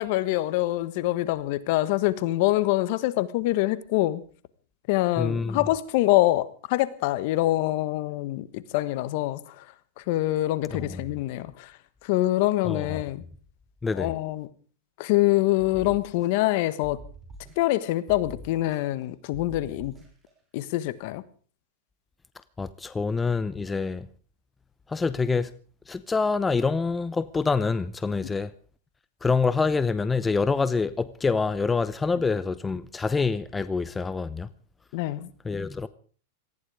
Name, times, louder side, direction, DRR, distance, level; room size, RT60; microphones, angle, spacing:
voice 1, 0.0-4.2 4.9-9.6 10.0-11.7 12.0-13.2 13.9-14.5 15.0-17.0 17.6-19.9 20.5-21.2 28.2-28.3 34.9-35.3, left 16 dB, 60° left, 1.4 m, -25 dB
voice 2, 5.2-5.6 10.7-11.0 12.6-13.0 13.8-14.1 22.6-24.1 24.9-25.5 25.9-28.5 29.2-34.5 35.4-35.9, left 4 dB, 15° left, 0.7 m, -26 dB
sound 1, 15.6-16.5 16.8-17.8 18.1-19.0 19.3-20.3, right 1 dB, 15° right, 6.1 m, -45 dB
18.5 x 15.0 x 4.9 m
hypercardioid pair, 120°, 0 cm